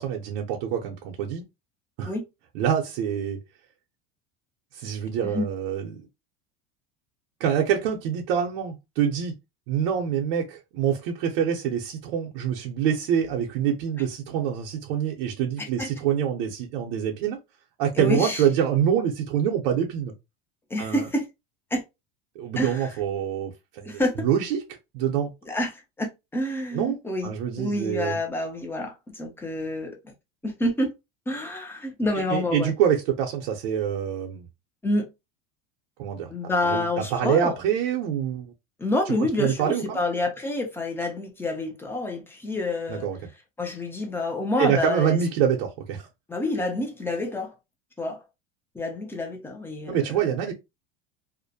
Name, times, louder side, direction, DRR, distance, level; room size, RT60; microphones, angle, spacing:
voice 1, 0.0-1.4 2.0-2.1 2.5-3.4 4.7-6.0 7.4-9.3 9.7-17.4 17.8-20.1 20.8-21.1 22.4-24.6 24.9-25.3 26.7-27.0 27.2-28.2 32.3-34.5 36.0-36.3 36.6-38.5 39.4-40.0 42.9-43.2 44.6-46.1 49.9-50.5, right 9 dB, 80° right, 0.6 m, -26 dB
voice 2, 17.9-18.4 20.7-21.3 21.7-21.8 22.6-22.9 23.8-24.3 25.5-27.3 27.6-30.1 30.4-30.9 31.3-32.7 34.8-35.1 36.3-37.5 38.8-43.1 43.6-45.2 46.3-47.5 48.0-48.2 48.7-50.0, left 1 dB, 10° left, 0.5 m, -28 dB
2.4 x 2.1 x 2.6 m
supercardioid pair, 135°, 29 cm